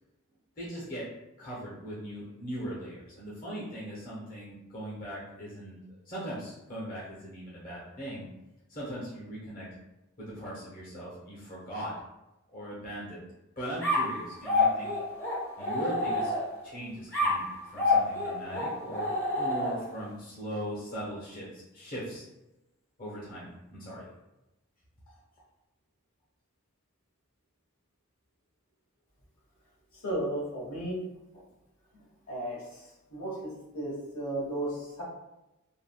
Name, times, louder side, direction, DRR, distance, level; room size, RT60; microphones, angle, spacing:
voice 1, 0.6-1.1 1.4-8.3 8.7-9.7 10.2-11.9 12.5-13.2 13.6-14.9 15.6-16.3 16.6-19.1 19.4-22.2 23.0-24.1, equal, 40° left, -7 dB, 0.8 m, -39 dB
sound 1, 13.8-16.7 17.1-20.0, left 2 dB, 10° left, 0.6 m, -28 dB
voice 2, 30.0-31.0 32.3-32.6 33.1-33.4 33.7-35.0, right 1 dB, 75° left, -6 dB, 1.2 m, -33 dB
3.5 x 2.1 x 2.2 m, 0.96 s
head